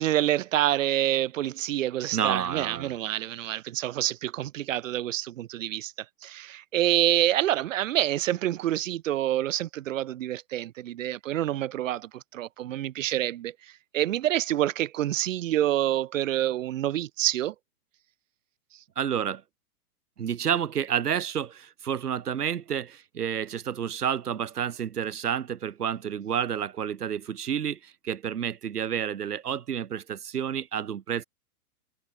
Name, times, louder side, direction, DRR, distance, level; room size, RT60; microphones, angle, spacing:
voice 1, 0.0-5.9 6.2-17.5, right 13 dB, 55° right, 4.3 m, -27 dB
voice 2, 2.1-3.0 19.0-19.4 20.2-31.2, right 8 dB, 90° right, 4.5 m, -30 dB
hypercardioid pair, 155°, 45 cm